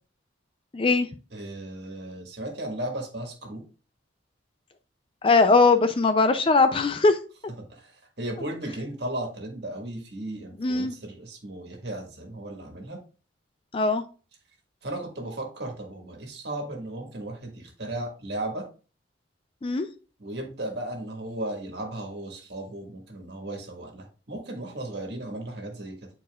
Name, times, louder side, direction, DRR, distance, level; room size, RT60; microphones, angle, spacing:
voice 1, 0.7-1.1 5.2-7.2 10.6-10.9 13.7-14.0 19.6-19.9, left 3 dB, 25° left, 9 dB, 0.4 m, -20 dB
voice 2, 1.3-3.6 7.7-13.0 14.8-18.6 20.2-26.1, right 1 dB, 55° right, 2 dB, 1.7 m, -35 dB
9.6 x 4.3 x 2.4 m, 0.35 s
head